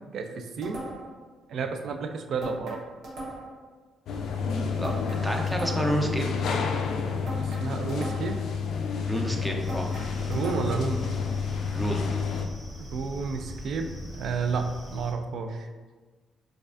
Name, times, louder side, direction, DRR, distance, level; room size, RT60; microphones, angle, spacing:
voice 1, 0.1-0.8 1.5-2.8 7.4-8.4 10.3-11.1 12.8-15.7, right 4 dB, 65° right, 6 dB, 0.4 m, -31 dB
sound 1, 0.6-1.2 2.4-3.6 4.8-6.1 7.3-8.5 9.7-10.9, right 1 dB, 80° right, 1.0 m, -39 dB
sound 2, 4.1-12.5, left 5 dB, 75° left, 0.3 m, -30 dB
voice 2, 5.2-6.2 9.0-9.9 11.7-12.1, right 1 dB, 10° right, 1 dB, 0.5 m, -29 dB
sound 3, 9.6-15.1, equal, 30° right, 0.9 m, -41 dB
4.6 x 2.4 x 2.5 m, 1.3 s
cardioid pair, 90°, 0 cm